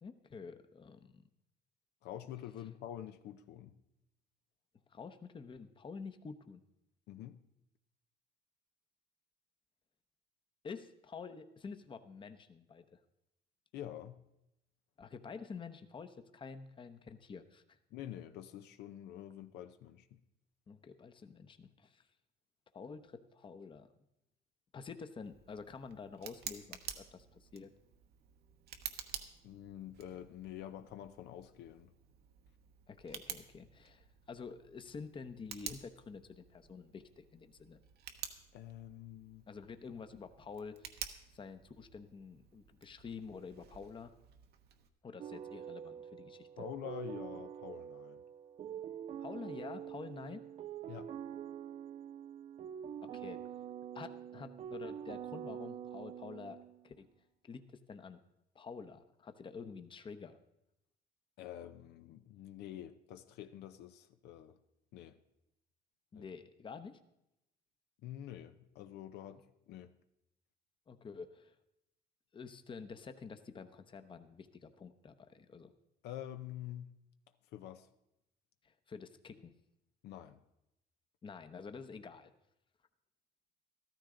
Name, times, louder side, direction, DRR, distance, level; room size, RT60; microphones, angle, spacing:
voice 1, 0.0-1.2 4.9-6.6 10.6-13.0 15.0-17.8 20.7-22.0 22.7-23.9 24.7-27.7 32.9-37.8 39.5-40.9 41.3-44.1 45.0-46.6 49.2-50.4 53.0-53.4 53.9-56.6 56.8-57.1 57.4-58.2 58.5-60.4 66.1-67.0 70.9-71.5 72.3-75.7 78.6-79.5 81.2-82.3, left 5 dB, 30° left, 10 dB, 0.8 m, -48 dB
voice 2, 2.0-3.8 7.1-7.4 13.7-14.2 17.9-20.2 29.4-31.9 38.5-39.4 46.6-48.2 50.9-51.1 61.4-64.5 64.9-65.1 66.2-66.3 68.0-69.4 69.7-69.9 76.0-76.9 77.5-77.9 80.0-80.4, left 11 dB, 80° left, 9 dB, 0.7 m, -47 dB
Tick, 25.2-44.9, right 9 dB, 70° right, 1.1 m, -51 dB
sound 1, 45.2-56.9, right 9 dB, 40° right, 0.4 m, -45 dB
13.5 x 13.0 x 3.8 m, 0.85 s
cardioid pair, 110°, 17 cm